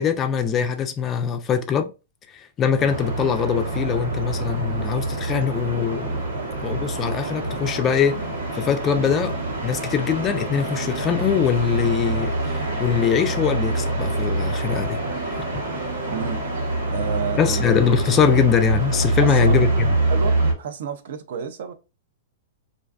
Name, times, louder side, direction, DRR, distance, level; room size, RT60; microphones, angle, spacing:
voice 1, 0.0-1.9 2.3-6.3 6.6-8.3 8.5-9.3 9.6-15.4 17.4-19.9, left 7 dB, 25° left, 0.3 m, -22 dB
sound 1, 2.8-20.5, right 2 dB, 85° right, 0.9 m, -25 dB
voice 2, 16.1-16.4 16.9-17.7 19.2-19.6 20.1-21.7, right 7 dB, 65° right, 0.4 m, -31 dB
2.4 x 2.3 x 2.3 m
hypercardioid pair, 145°, 0 cm